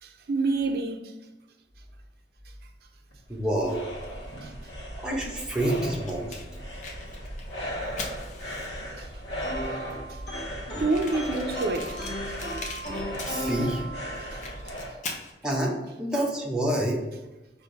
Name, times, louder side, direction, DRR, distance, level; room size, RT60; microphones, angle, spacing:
voice 1, 0.0-1.1 4.4-4.5 9.0-9.1 10.1-10.2 10.8-12.0 14.3-14.4, right 3 dB, 60° right, 0.5 m, -28 dB
sound 1, 3.1-15.0, equal, 90° left, 1.2 m, -37 dB
voice 2, 3.3-4.2 5.0-6.4 13.2-13.8 15.4-17.0, right 1 dB, 5° right, 0.9 m, -28 dB
Fire, 5.1-9.0 9.6-9.7 9.9-10.0 10.2-10.3 10.8-13.8 14.1-15.3, left 3 dB, 45° left, 0.7 m, -41 dB
sound 2, 9.4-14.5, right 1 dB, 70° left, 1.5 m, -36 dB
5.1 x 2.6 x 3.9 m
head